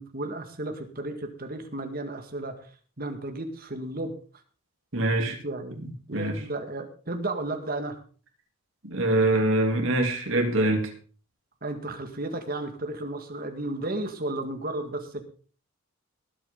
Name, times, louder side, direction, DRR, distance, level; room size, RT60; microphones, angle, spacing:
voice 1, 0.0-2.7 3.0-4.1 5.3-5.8 6.1-8.0 11.6-15.2, right 2 dB, 40° right, 6 dB, 1.9 m, -33 dB
voice 2, 4.9-5.4 5.8-6.4 8.8-10.9, right 2 dB, 60° right, 2 dB, 3.2 m, -24 dB
19.5 x 8.7 x 3.9 m, 0.40 s
head